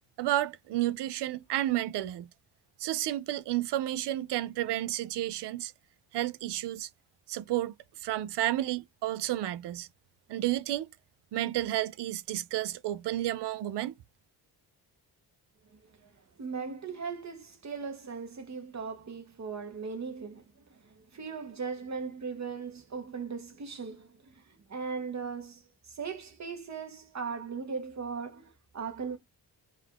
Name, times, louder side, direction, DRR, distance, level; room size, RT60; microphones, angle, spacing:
voice 1, 0.2-2.3 2.8-5.7 6.1-6.9 7.3-7.7 8.0-9.9 10.3-10.9 11.3-13.9, right 14 dB, 80° right, 0.5 m, -31 dB
voice 2, 15.7-16.1 16.4-29.2, right 5 dB, 40° right, 1.1 m, -39 dB
3.8 x 2.4 x 4.6 m
cardioid pair, 120°, 41 cm